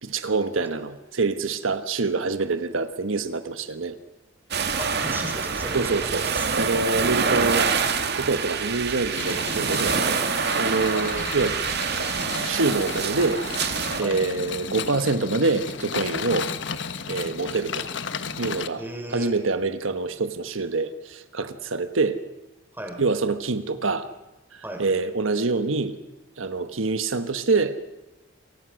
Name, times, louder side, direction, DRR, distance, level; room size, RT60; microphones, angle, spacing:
voice 1, 0.0-3.9 5.7-6.3 6.5-10.3 10.6-11.6 12.4-16.5 17.1-17.9 18.4-18.8 19.1-22.2 23.0-24.1 24.5-26.0 26.4-27.9, right 3 dB, 80° right, 10 dB, 1.3 m, -26 dB
sound 1, 4.5-14.0, right 5 dB, 55° right, 2.2 m, -26 dB
voice 2, 4.7-6.5 10.9-11.1 14.0-14.2 18.7-19.3 22.7-23.0 24.6-24.8, right 1 dB, 10° right, 3 dB, 5.1 m, -35 dB
Cart Rolling, 9.2-18.7, left 6 dB, 65° left, 1.3 m, -34 dB
28.5 x 24.0 x 6.4 m, 1.0 s
head